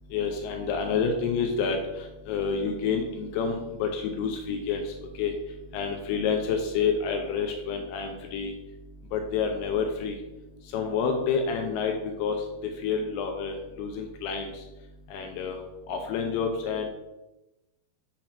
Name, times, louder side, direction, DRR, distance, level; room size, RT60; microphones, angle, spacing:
voice 1, 0.1-8.6 9.1-10.2 10.6-14.7 15.1-16.9, left 5 dB, 80° left, 3 dB, 2.3 m, -29 dB
7.3 x 2.9 x 5.0 m, 0.98 s
omnidirectional pair, 5.2 m